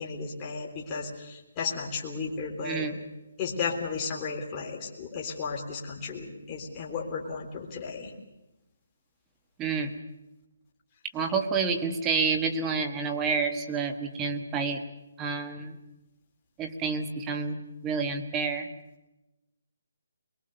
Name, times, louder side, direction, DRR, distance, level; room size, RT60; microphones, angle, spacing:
voice 1, 0.0-2.9 3.4-8.1, left 5 dB, 20° left, -2 dB, 3.5 m, -34 dB
voice 2, 2.6-3.0 9.6-9.9 11.1-14.8 15.2-15.8 16.6-18.7, right 5 dB, 10° right, 6 dB, 1.5 m, -29 dB
23.0 x 23.0 x 6.8 m, 0.99 s
hypercardioid pair, 170°, 0 cm